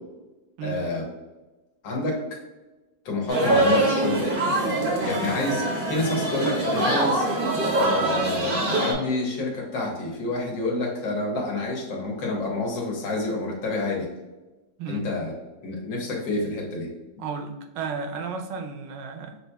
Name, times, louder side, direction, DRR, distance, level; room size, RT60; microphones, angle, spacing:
voice 1, 0.6-1.0 1.8-2.2 3.1-4.3 5.0-7.3 7.7-14.1 14.9-15.3 15.6-16.9, left 2 dB, 80° left, -1 dB, 1.7 m, -28 dB
sound 1, 3.3-8.9, right 1 dB, 50° right, 0.6 m, -24 dB
voice 2, 17.2-19.4, right 5 dB, 80° right, 4 dB, 1.2 m, -33 dB
6.2 x 2.7 x 2.2 m, 1.1 s
omnidirectional pair, 2.0 m